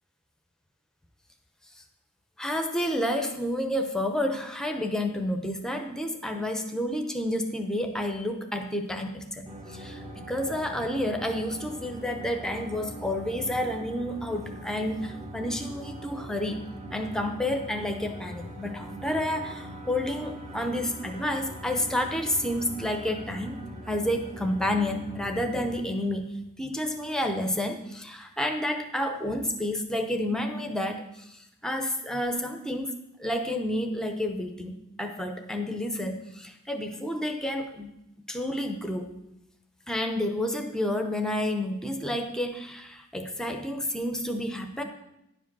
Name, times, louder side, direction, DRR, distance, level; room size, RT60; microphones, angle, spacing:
voice 1, 2.4-16.6 16.9-23.6 23.9-26.3 26.6-32.9 33.2-37.9 38.3-39.1 39.9-44.8, left 1 dB, 5° left, 5 dB, 0.7 m, -30 dB
sound 1, 9.5-25.8, equal, 30° right, 1.2 m, -42 dB
10.0 x 5.0 x 6.0 m, 0.83 s
head